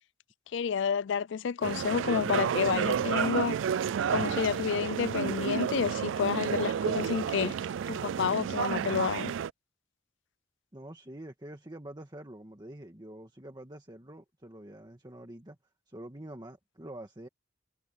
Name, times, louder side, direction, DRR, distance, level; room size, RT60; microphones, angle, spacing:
voice 1, 0.5-3.6 4.1-7.6 7.9-9.3, left 6 dB, 70° left, 0.4 m, -30 dB
sound 1, 1.6-9.5, right 8 dB, 85° right, 0.3 m, -31 dB
voice 2, 10.7-15.6 15.9-17.3, right 1 dB, 25° right, 1.8 m, -46 dB
head